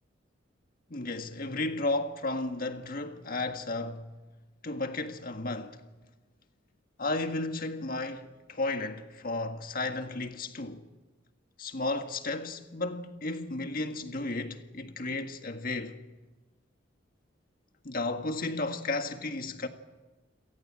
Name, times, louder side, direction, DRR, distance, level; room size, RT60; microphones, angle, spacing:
voice 1, 0.9-4.1 4.6-5.8 7.0-10.8 11.6-16.0 17.8-19.7, left 2 dB, 50° left, 1.7 m, -33 dB
29.0 x 18.5 x 7.5 m
head